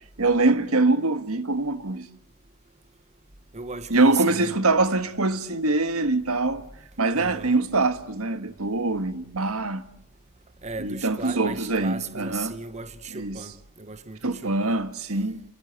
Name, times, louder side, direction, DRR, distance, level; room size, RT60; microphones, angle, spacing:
voice 1, 0.2-2.1 3.9-6.6 7.0-9.8 10.8-12.5 13.1-13.4 14.2-15.4, right 3 dB, 70° right, 1.6 m, -24 dB
voice 2, 3.5-4.5 7.2-7.5 10.6-13.5 13.8-14.8, right 4 dB, 30° right, 1.0 m, -36 dB
30.0 x 23.0 x 8.1 m
head